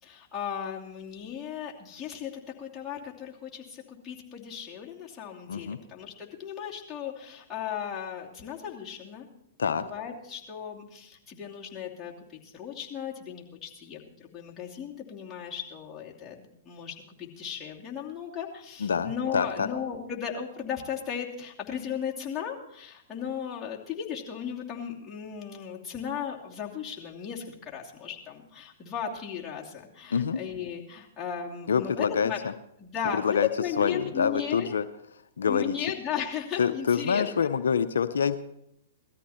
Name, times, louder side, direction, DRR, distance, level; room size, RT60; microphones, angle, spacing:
voice 1, 0.0-9.3 9.6-32.4 32.8-34.8 35.4-37.5, left 8 dB, 15° left, -4 dB, 2.8 m, -36 dB
voice 2, 18.8-19.7 30.1-30.4 31.7-32.5 33.1-33.5 33.8-34.8 35.4-35.7 36.6-38.4, left 6 dB, 80° left, 11 dB, 0.6 m, -26 dB
18.0 x 13.5 x 4.4 m, 0.80 s
hypercardioid pair, 120°, 0 cm